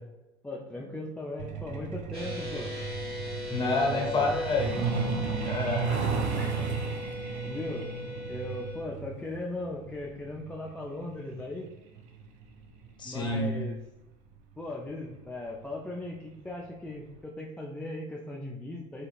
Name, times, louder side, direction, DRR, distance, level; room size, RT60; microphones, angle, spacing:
voice 1, 0.4-2.7 3.6-4.4 6.4-6.7 7.4-7.9 8.3-11.7 13.0-13.8 14.6-19.1, left 2 dB, 5° left, -2 dB, 0.3 m, -38 dB
Truck, 1.4-13.7 14.9-15.1 15.5-15.7 16.0-16.3 16.6-16.7 17.2-17.3, right 5 dB, 55° right, 0.5 m, -34 dB
sound 1, 2.1-8.8, left 2 dB, 35° right, 1.1 m, -39 dB
voice 2, 3.5-4.8 5.4-6.1 13.0-13.6, left 3 dB, 30° left, 1 dB, 0.9 m, -29 dB
2.5 x 2.3 x 3.1 m, 0.97 s
hypercardioid pair, 85°, 16 cm